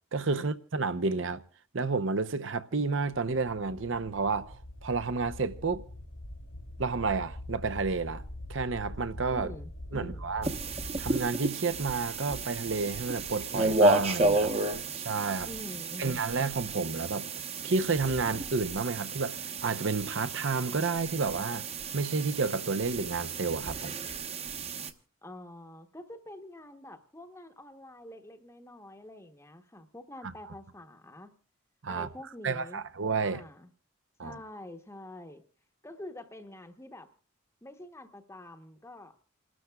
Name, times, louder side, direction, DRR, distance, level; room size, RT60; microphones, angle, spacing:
voice 1, 0.1-1.4 1.7-5.8 6.8-8.2 8.5-9.5 9.9-10.5 11.0-14.5 15.1-15.5 16.0-17.3 17.6-21.7 21.9-24.0 31.8-32.1 32.4-33.4 34.2-34.4, right 4 dB, 65° right, 0.7 m, -30 dB
sound 1, 3.1-11.2, left 1 dB, 85° left, 2.6 m, -43 dB
voice 2, 9.3-10.3 15.4-16.2 25.2-31.3 31.9-32.8 33.2-33.7 34.2-35.4 35.8-37.1 37.6-39.2, left 1 dB, 15° left, 0.9 m, -46 dB
sound 2, 10.4-24.9, right 2 dB, 30° right, 0.9 m, -32 dB
29.0 x 12.5 x 2.3 m
head